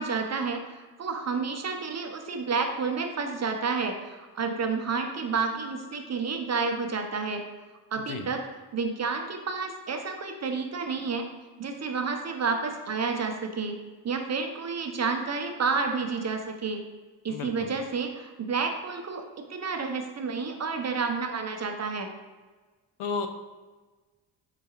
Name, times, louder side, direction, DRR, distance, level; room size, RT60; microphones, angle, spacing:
voice 1, 0.0-7.4 7.9-8.4 8.7-11.3 11.6-13.8 14.0-16.8 17.2-22.1, right 4 dB, 35° right, 4 dB, 0.6 m, -30 dB
voice 2, 17.3-17.7 23.0-23.3, left 5 dB, 75° left, 7 dB, 0.6 m, -32 dB
4.7 x 3.7 x 2.9 m, 1.3 s
cardioid pair, 75°, 49 cm